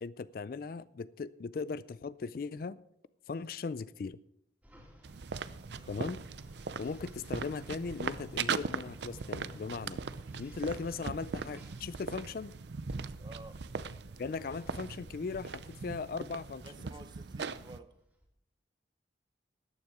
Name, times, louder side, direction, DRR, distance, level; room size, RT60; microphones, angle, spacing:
voice 1, 0.0-2.8 3.3-4.2 5.9-6.2 6.8-10.0 10.4-12.5 14.2-16.7, left 4 dB, 50° left, 18 dB, 0.4 m, -38 dB
sound 1, 4.6-18.3, equal, 10° right, 2.5 m, -56 dB
sound 2, 5.0-17.8, right 5 dB, 70° right, 0.5 m, -40 dB
voice 2, 5.8-6.1 13.1-13.7 16.6-18.0, right 2 dB, 25° right, 10 dB, 0.8 m, -52 dB
13.5 x 9.5 x 4.8 m, 0.73 s
head